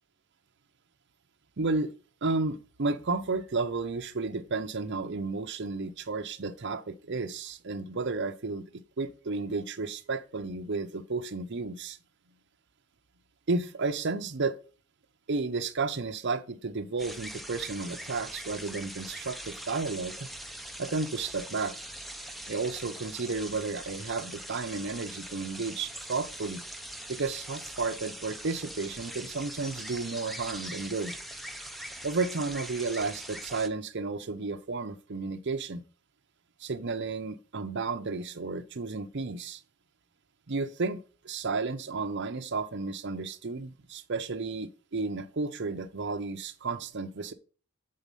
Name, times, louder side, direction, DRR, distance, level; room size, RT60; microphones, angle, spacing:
voice 1, 1.6-1.9 2.2-8.6 9.0-12.0 13.5-14.6 15.3-20.3 20.8-21.8 22.5-26.6 27.1-31.1 32.0-35.8 36.6-39.6 40.5-41.0 41.2-47.3, right 3 dB, 55° right, 0.7 m, -32 dB
sound 1, 17.0-33.7, right 1 dB, ahead, 0.6 m, -42 dB
7.6 x 4.2 x 5.3 m
head